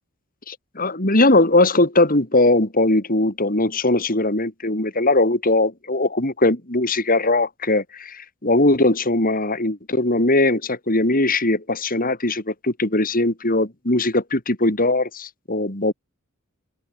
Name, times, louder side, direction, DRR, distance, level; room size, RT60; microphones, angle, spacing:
voice 1, 0.5-15.9, left 2 dB, 40° left, 4.2 m, -20 dB
head